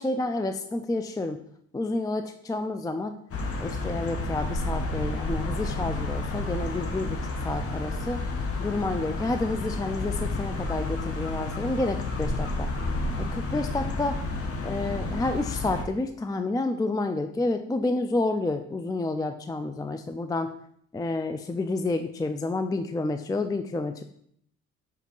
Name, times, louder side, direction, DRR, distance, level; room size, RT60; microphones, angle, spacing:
voice 1, 0.0-1.4 1.7-3.2 3.6-8.2 8.6-12.7 13.2-14.2 14.6-20.6 20.9-24.0, left 2 dB, 10° left, 8 dB, 0.4 m, -29 dB
sound 1, 3.3-15.8, left 2 dB, 50° left, 1.1 m, -31 dB
5.1 x 4.0 x 5.3 m, 0.66 s
cardioid pair, 90°, 30 cm